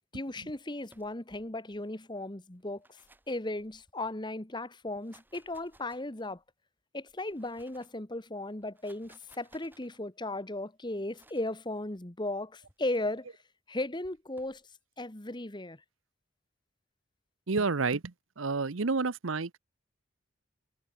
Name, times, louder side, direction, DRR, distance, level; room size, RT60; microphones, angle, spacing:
voice 1, 0.1-3.0 3.3-6.4 6.9-13.4 13.7-14.6 15.0-15.8, left 2 dB, 20° left, 1.3 m, -36 dB
sound 1, 0.9-1.5 2.6-4.1 4.8-6.4 7.1-8.0 8.6-10.0 11.1-11.6 12.6-13.0 14.0-14.6, right 2 dB, 10° right, 7.5 m, -63 dB
voice 2, 17.5-18.0 18.4-19.6, right 4 dB, 75° right, 0.9 m, -29 dB
head